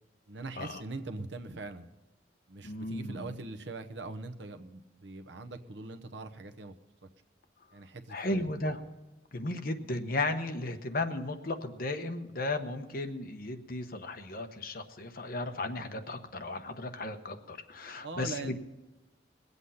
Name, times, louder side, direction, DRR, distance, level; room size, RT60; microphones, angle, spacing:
voice 1, 0.3-1.9 2.5-6.7 7.0-7.1 7.7-8.4 18.0-18.6, right 3 dB, 80° right, 6 dB, 1.0 m, -42 dB
voice 2, 2.6-3.4 8.1-8.8 9.3-18.6, left 2 dB, 50° left, 6 dB, 1.0 m, -35 dB
21.0 x 8.2 x 5.6 m, 1.1 s
head